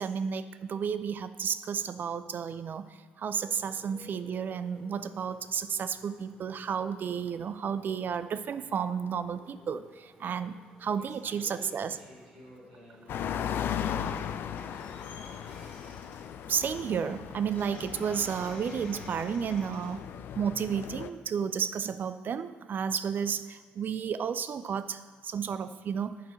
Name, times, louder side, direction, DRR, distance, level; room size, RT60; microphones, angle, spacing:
voice 1, 0.0-11.9 16.5-20.1 20.4-26.2, right 7 dB, 50° right, 13 dB, 0.4 m, -32 dB
Motorcycle, 3.4-19.1, left 1 dB, 5° left, 2.1 m, -60 dB
voice 2, 10.9-15.7, equal, 80° right, -4 dB, 1.9 m, -52 dB
sound 1, 13.1-21.1, left 9 dB, 55° left, 0.4 m, -37 dB
sound 2, 14.1-14.3 14.6-20.8, left 2 dB, 75° left, 2.6 m, -51 dB
10.0 x 4.5 x 5.6 m, 1.5 s
hypercardioid pair, 45°, 4 cm